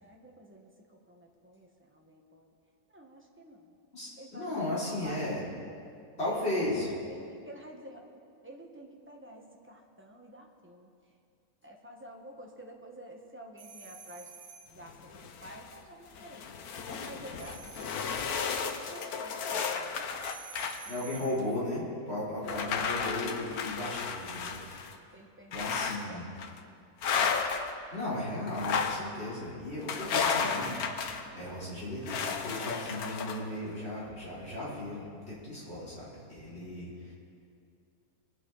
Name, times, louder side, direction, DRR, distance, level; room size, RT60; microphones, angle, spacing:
voice 1, 0.0-2.5 2.9-3.8 4.2-5.4 6.2-8.1 8.4-10.9 11.6-14.3 14.6-16.4 16.8-18.4 18.8-20.1 22.5-22.9 25.1-26.2, right 1 dB, 10° right, 0 dB, 1.1 m, -50 dB
voice 2, 3.9-5.4 6.2-6.9 20.9-24.6 25.5-26.3 27.9-30.8 31.3-37.1, left 1 dB, 45° left, -8 dB, 4.2 m, -35 dB
sound 1, 13.6-14.8 17.4-18.6 20.2-21.5, right 6 dB, 80° right, 1.6 m, -49 dB
sound 2, 14.9-15.8 16.2-20.8 21.4-21.5 22.4-24.9 25.5-26.0 26.4-26.6 27.0-27.7 28.5-29.1 29.9-31.3 32.1-33.4, left 6 dB, 85° left, 1.3 m, -33 dB
22.5 x 8.9 x 4.0 m, 2.4 s
omnidirectional pair, 1.6 m